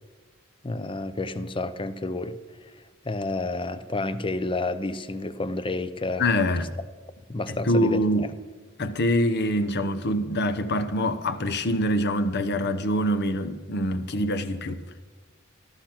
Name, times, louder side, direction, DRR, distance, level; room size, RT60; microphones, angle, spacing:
voice 1, 0.6-2.4 2.6-6.3 7.3-8.0, left 2 dB, 25° left, 0.7 m, -30 dB
voice 2, 6.2-6.7 7.5-8.3 8.8-14.8, equal, 55° left, 0.9 m, -25 dB
14.0 x 13.5 x 6.0 m
head